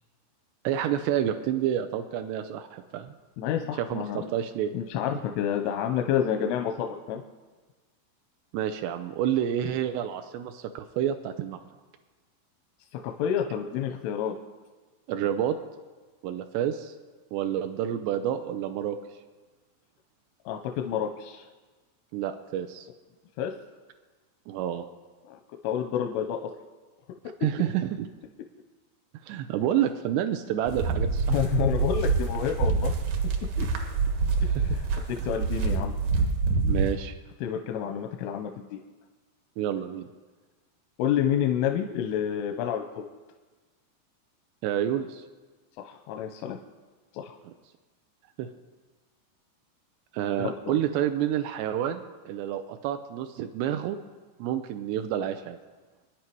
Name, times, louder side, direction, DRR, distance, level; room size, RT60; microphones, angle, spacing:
voice 1, 0.6-3.1 3.8-4.7 8.5-11.6 15.1-15.6 16.2-17.0 17.3-19.0 22.1-22.9 24.5-24.9 27.4-28.1 29.2-31.3 34.4-34.8 36.6-37.1 39.6-40.1 44.6-45.2 47.5-47.6 48.4-48.5 50.1-54.0 54.4-55.6, right 10 dB, 90° right, 7 dB, 2.5 m, -29 dB
voice 2, 3.4-4.3 4.7-7.2 13.0-14.3 20.5-21.4 23.4-23.5 25.3-25.4 25.6-26.5 31.3-32.9 33.6-33.7 35.2-35.9 37.4-38.8 41.0-43.1 45.9-46.6 47.1-47.3 50.4-50.5, left 9 dB, 85° left, 3 dB, 3.3 m, -29 dB
sound 1, 30.7-36.9, right 4 dB, 65° right, 2.2 m, -26 dB
27.0 x 10.5 x 4.7 m, 1.3 s
omnidirectional pair, 5.6 m